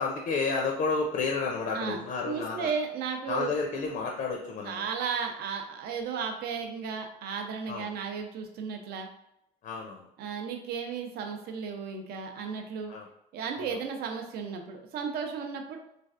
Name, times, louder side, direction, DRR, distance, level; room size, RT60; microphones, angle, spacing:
voice 1, 0.0-2.7 3.3-4.9 7.7-7.9 9.6-10.1 12.9-13.1 13.6-13.8, left 4 dB, 60° left, 1 dB, 0.5 m, -31 dB
voice 2, 1.7-3.5 4.7-9.1 10.2-12.9 13.3-15.8, right 6 dB, 65° right, 4 dB, 0.5 m, -34 dB
3.1 x 2.4 x 2.4 m, 0.79 s
cardioid pair, 110°, 17 cm